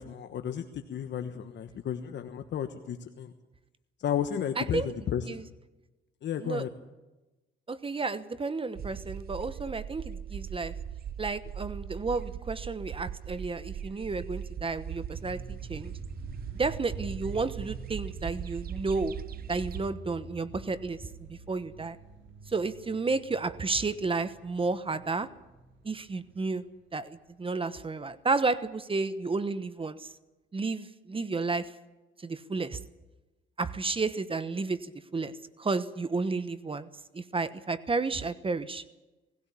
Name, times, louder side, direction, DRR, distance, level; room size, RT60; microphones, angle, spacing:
voice 1, 0.0-3.3 4.0-5.3 6.2-6.7, left 9 dB, 65° left, 7 dB, 1.3 m, -33 dB
voice 2, 4.6-4.9 5.3-5.4 6.4-6.7 7.7-10.7 11.2-15.9 16.5-19.1 19.5-21.0 21.3-22.0 22.5-25.3 25.8-26.6 26.9-30.1 30.5-31.7 32.2-32.8 33.6-36.9 37.1-38.8, right 3 dB, 25° right, 13 dB, 1.1 m, -32 dB
sound 1, 8.8-19.9, right 9 dB, 50° right, 0.7 m, -39 dB
sound 2, 15.1-28.2, right 2 dB, 75° right, 4.1 m, -48 dB
19.5 x 16.5 x 8.4 m, 1.1 s
cardioid pair, 90°, 20 cm